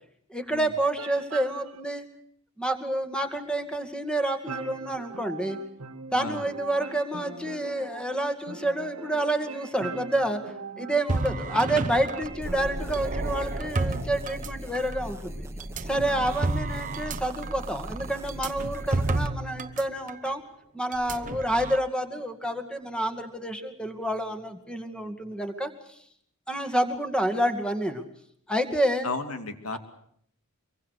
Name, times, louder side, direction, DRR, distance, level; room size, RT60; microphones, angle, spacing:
voice 1, 0.3-2.1 2.6-5.6 6.1-10.4 10.8-15.4 15.8-20.4 20.7-25.7 26.5-28.0 28.5-29.1 29.7-29.8, right 1 dB, 5° left, 8 dB, 2.2 m, -28 dB
sound 1, 1.0-1.8 4.5-14.2, right 4 dB, 70° right, 1.7 m, -41 dB
sound 2, 11.1-15.0 15.6-19.8 20.1-20.3 20.9-21.8, right 2 dB, 35° right, 0.9 m, -31 dB
sound 3, 12.4-19.3, equal, 10° right, 1.6 m, -39 dB
voice 2, 29.0-29.8, left 3 dB, 70° left, 9 dB, 2.5 m, -34 dB
24.5 x 23.5 x 6.6 m, 0.67 s
head